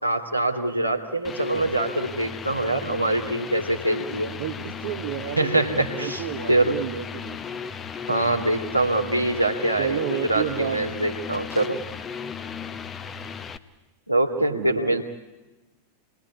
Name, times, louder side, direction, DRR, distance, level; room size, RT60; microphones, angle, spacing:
voice 1, 0.0-4.3 5.4-6.2 6.5-6.8 8.1-11.8 14.1-15.0, right 2 dB, 90° right, 3 dB, 2.6 m, -24 dB
sound 1, 1.2-13.6, left 6 dB, 20° left, 1.2 m, -35 dB
voice 2, 4.1-5.5 6.0-7.4 8.2-8.3 9.8-11.1 14.4-15.0, right 10 dB, 55° right, 5 dB, 1.4 m, -32 dB
29.0 x 21.0 x 9.8 m, 1.1 s
figure-of-eight pair, 90°, 0 cm